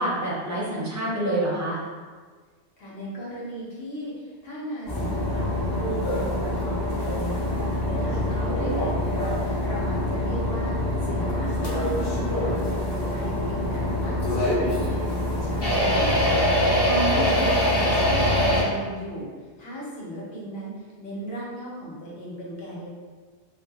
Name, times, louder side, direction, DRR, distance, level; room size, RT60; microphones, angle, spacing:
voice 1, 0.0-1.8 16.9-17.4, right 1 dB, 25° right, -6 dB, 0.4 m, -27 dB
voice 2, 2.8-5.4 5.7-16.5 17.1-19.3 19.6-22.9, right 1 dB, 65° left, -5 dB, 1.0 m, -37 dB
sound 1, 4.9-18.6, left 1 dB, 35° left, 0.4 m, -24 dB
2.4 x 2.2 x 2.8 m, 1.5 s
omnidirectional pair, 1.1 m